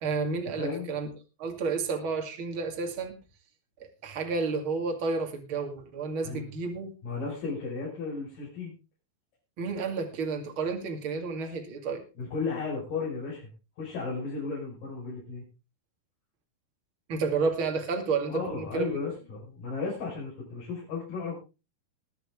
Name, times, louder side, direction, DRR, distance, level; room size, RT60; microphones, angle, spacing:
voice 1, 0.0-1.1 1.4-3.1 3.8-6.9 9.6-12.0 17.1-18.8, right 4 dB, 35° right, 4 dB, 2.4 m, -31 dB
voice 2, 0.5-0.9 6.2-6.5 7.0-8.7 12.1-13.4 13.8-15.4 18.3-21.4, left 4 dB, 50° left, -6 dB, 6.7 m, -34 dB
20.5 x 9.0 x 3.6 m, 0.30 s
omnidirectional pair, 5.0 m